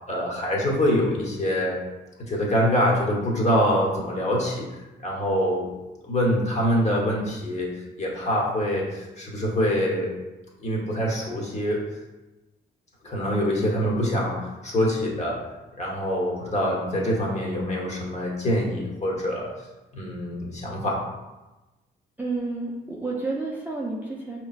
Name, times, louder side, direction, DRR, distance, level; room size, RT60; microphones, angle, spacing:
voice 1, 0.1-1.8 2.3-4.7 5.0-5.7 6.0-7.7 8.0-10.1 10.6-11.8 13.0-15.4 15.8-19.5 19.9-21.0, equal, 35° left, -2 dB, 1.1 m, -25 dB
voice 2, 22.2-24.4, right 3 dB, 10° right, -4 dB, 0.5 m, -30 dB
4.7 x 2.9 x 2.4 m, 1.1 s
cardioid pair, 90°, 20 cm